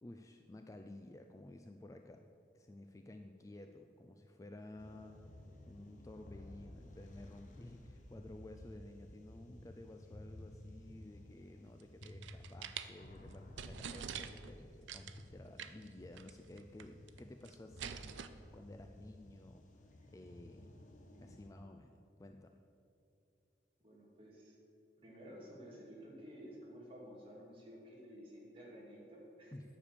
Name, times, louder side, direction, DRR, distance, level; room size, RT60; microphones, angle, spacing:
voice 1, 0.0-2.3 2.5-5.2 5.7-18.2 18.5-20.8 21.2-22.6 29.5-29.6, left 1 dB, 15° left, 5 dB, 0.3 m, -54 dB
sound 1, 4.8-21.5, left 1 dB, 45° left, 1.0 m, -55 dB
sound 2, 11.8-12.9 13.3-13.4 13.6-14.5 14.9-15.2 15.6-15.9 16.2-16.3 16.6-17.2 17.5-18.3, right 8 dB, 85° right, 0.5 m, -45 dB
voice 2, 23.8-24.6 25.0-29.5, equal, 30° right, -4 dB, 2.4 m, -53 dB
10.0 x 6.9 x 6.7 m, 2.6 s
head